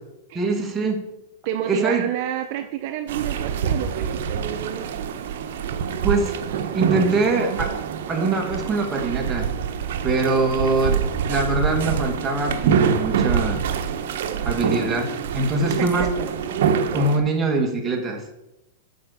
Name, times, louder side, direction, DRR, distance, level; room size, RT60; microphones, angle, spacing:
voice 1, 0.3-1.0 1.7-2.1 6.0-6.3 6.7-7.7 8.1-9.5 10.0-13.6 14.5-16.1 16.9-18.2, right 3 dB, 15° right, 2 dB, 1.9 m, -23 dB
voice 2, 1.4-4.9 15.8-16.1, right 10 dB, 50° right, 7 dB, 0.7 m, -29 dB
sound 1, 3.1-17.2, right 7 dB, 65° right, 1.1 m, -25 dB
8.6 x 5.9 x 7.1 m, 0.92 s
supercardioid pair, 145°, 0 cm